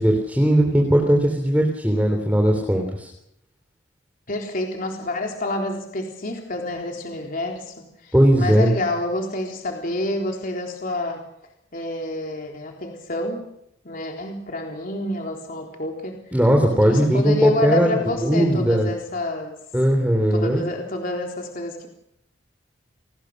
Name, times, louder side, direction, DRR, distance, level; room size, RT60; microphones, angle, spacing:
voice 1, 0.0-3.1 8.1-8.7 16.3-18.9 19.7-20.6, right 1 dB, 10° right, 2 dB, 3.5 m, -18 dB
voice 2, 4.3-11.2 11.7-13.4 13.8-16.3 16.8-19.6 20.3-21.9, left 1 dB, 45° left, 1 dB, 3.8 m, -28 dB
30.0 x 20.0 x 6.6 m, 0.78 s
head